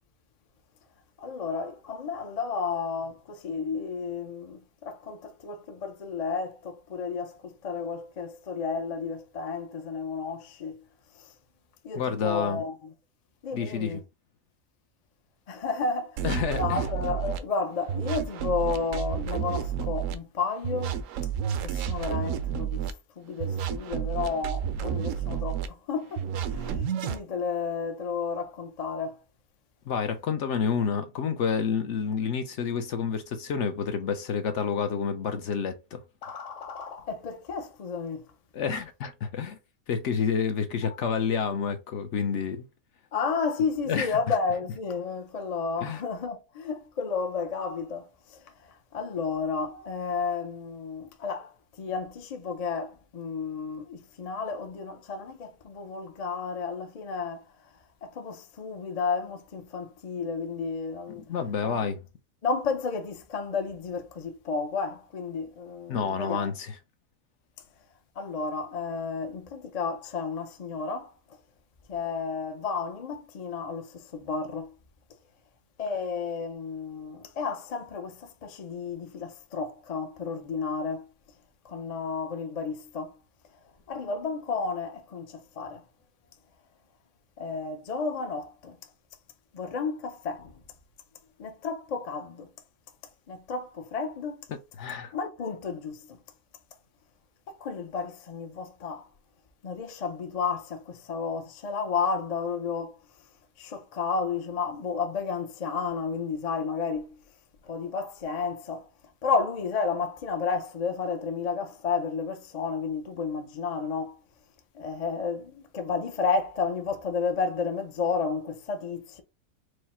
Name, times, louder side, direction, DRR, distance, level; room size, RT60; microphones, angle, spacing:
voice 1, 1.2-10.8 11.8-12.8 13.4-14.0 15.5-16.2 16.5-21.0 21.6-22.9 23.2-26.2 26.5-29.2 36.2-38.2 43.1-48.1 48.9-51.5 51.8-57.4 58.0-61.2 61.6-61.8 62.4-66.5 68.2-71.1 71.9-74.7 75.8-81.1 81.6-83.1 83.9-85.8 87.4-88.8 89.5-90.6 91.4-92.5 93.3-94.4 95.1-96.2 97.5-99.0 99.6-103.0 103.6-107.1 107.7-108.8 109.2-114.2 114.7-119.2, left 5 dB, 45° left, 0.5 m, -32 dB
voice 2, 11.9-12.6 13.5-14.0 16.2-16.9 29.9-36.0 38.5-39.6 39.9-42.7 43.9-44.3 45.8-46.0 61.2-62.0 65.9-66.8 94.5-95.1, left 6 dB, 65° left, 0.9 m, -29 dB
sound 1, 16.2-17.4 17.9-20.1 20.6-22.9 23.4-25.7 26.2-27.2, right 8 dB, 70° right, 0.9 m, -30 dB
4.7 x 2.1 x 4.2 m
omnidirectional pair, 1.4 m